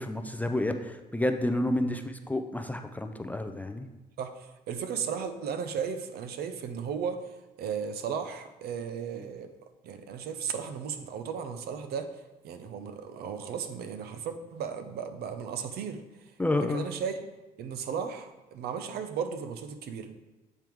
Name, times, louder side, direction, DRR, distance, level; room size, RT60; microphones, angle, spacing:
voice 1, 0.0-3.9 9.1-9.3 16.4-16.9, left 1 dB, 10° left, 7 dB, 0.4 m, -30 dB
voice 2, 4.2-9.5 9.8-16.0 16.6-17.2 17.6-20.1, right 7 dB, 70° right, 9 dB, 0.6 m, -35 dB
7.7 x 3.5 x 4.5 m, 1.1 s
cardioid pair, 110°, 17 cm